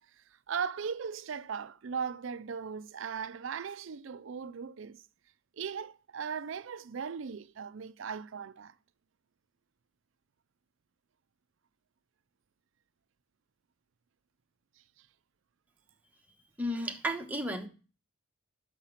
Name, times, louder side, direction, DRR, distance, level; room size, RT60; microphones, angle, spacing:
voice 1, 0.5-5.0 5.6-8.7, right 6 dB, 60° right, 0.4 m, -38 dB
voice 2, 16.6-17.7, equal, 10° right, 1.1 m, -33 dB
5.9 x 5.8 x 7.0 m
head